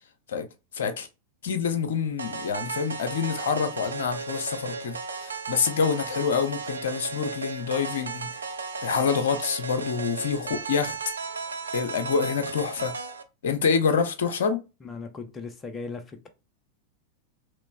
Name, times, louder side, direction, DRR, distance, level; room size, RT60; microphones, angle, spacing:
voice 1, 0.7-1.1 1.4-8.3 8.8-11.0 11.7-12.9 13.4-14.6, left 6 dB, 60° left, 0.6 m, -26 dB
sound 1, 2.2-13.2, right 4 dB, 75° right, 0.4 m, -35 dB
voice 2, 14.8-16.3, left 4 dB, 20° left, 0.7 m, -38 dB
3.1 x 3.0 x 3.4 m
figure-of-eight pair, 90°, 0 cm